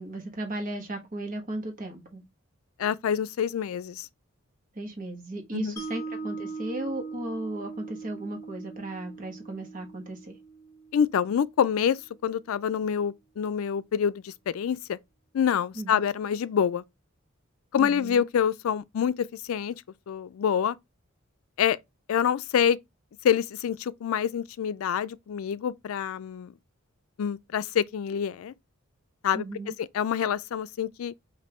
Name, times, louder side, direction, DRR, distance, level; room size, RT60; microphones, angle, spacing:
voice 1, 0.0-2.2 4.7-10.3 15.7-16.1 17.8-18.2 29.3-29.7, right 1 dB, 40° right, 1.2 m, -35 dB
voice 2, 2.8-4.1 5.5-5.8 10.9-12.0 12.2-15.0 15.3-16.8 17.7-19.1 19.4-19.8 20.1-20.8 21.6-21.8 22.1-22.8 23.2-26.5 27.2-28.5 29.2-29.5 29.8-31.1, left 8 dB, 90° left, 0.4 m, -26 dB
Mallet percussion, 5.8-11.9, right 4 dB, 15° left, 1.3 m, -40 dB
5.2 x 2.6 x 2.9 m
head